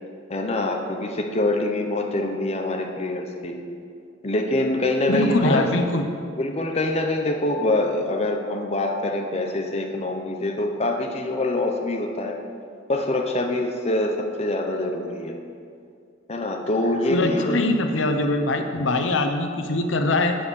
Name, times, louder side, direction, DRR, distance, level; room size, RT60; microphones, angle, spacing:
voice 1, 0.3-3.6 4.2-5.9 6.4-12.4 12.9-15.4 16.3-17.7, left 2 dB, 35° left, 2 dB, 0.7 m, -25 dB
voice 2, 5.1-6.1 17.1-20.4, left 2 dB, 75° left, 6 dB, 0.8 m, -22 dB
8.3 x 7.7 x 7.0 m, 2.3 s
head